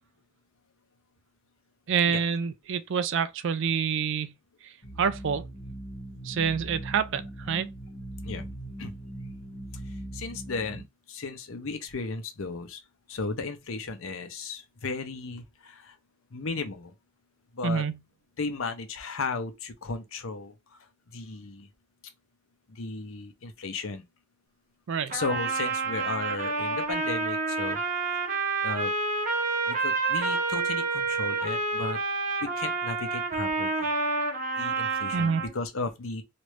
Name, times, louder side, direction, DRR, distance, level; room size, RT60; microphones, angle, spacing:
voice 1, 1.9-4.3 5.0-5.4 6.2-7.7 17.6-18.0 24.9-25.1 35.1-35.4, right 6 dB, 65° right, 0.4 m, -27 dB
sound 1, 4.8-10.8, right 1 dB, 35° left, 1.0 m, -40 dB
voice 2, 10.1-12.8 13.1-16.0 16.3-16.9 17.5-17.9 18.4-20.5 21.1-21.7 22.7-24.0 25.1-27.8 28.6-28.9 29.7-32.0 32.4-33.9 34.6-36.2, left 3 dB, 70° left, 0.7 m, -35 dB
Trumpet, 25.1-35.5, right 3 dB, 40° right, 0.9 m, -29 dB
3.1 x 2.5 x 3.1 m
head